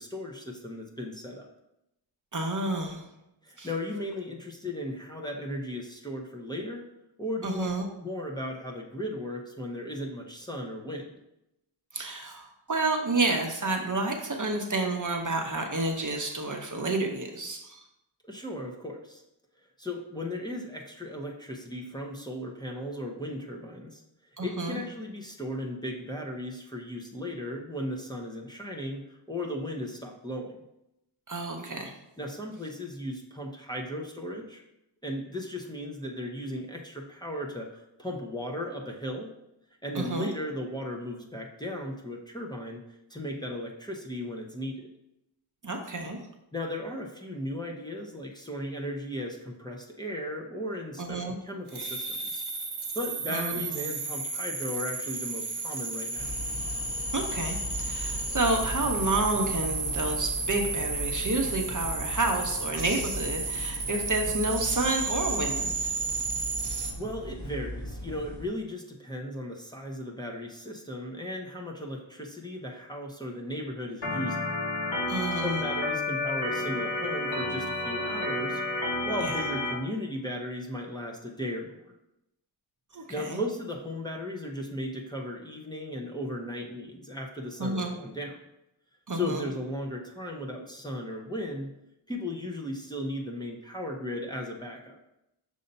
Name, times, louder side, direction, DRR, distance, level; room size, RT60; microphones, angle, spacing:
voice 1, 0.0-1.5 3.4-6.9 7.2-7.6 8.0-11.1 18.2-19.2 19.8-24.0 24.4-30.6 32.2-34.6 35.0-39.3 39.8-44.9 46.5-52.4 52.9-56.3 67.0-74.5 75.4-78.6 79.0-81.8 82.9-88.4 89.1-91.7 92.1-95.0, left 1 dB, 10° left, -1 dB, 0.8 m, -36 dB
voice 2, 2.3-3.0 3.6-3.7 7.4-7.8 11.9-17.8 24.4-24.8 31.3-31.9 39.9-40.3 45.6-46.2 51.0-51.3 53.3-53.7 57.1-66.0 75.1-75.6 79.2-79.4 82.9-83.4 87.6-87.9 89.1-89.4, right 2 dB, 40° right, 3 dB, 0.8 m, -30 dB
sound 1, 51.7-66.9, right 3 dB, 55° right, 1.2 m, -33 dB
sound 2, 56.2-68.5, right 1 dB, 35° left, 2.0 m, -38 dB
Organ, 74.0-79.7, left 2 dB, 60° left, 2.3 m, -30 dB
6.6 x 2.8 x 5.3 m, 0.86 s
wide cardioid pair, 80°, 48 cm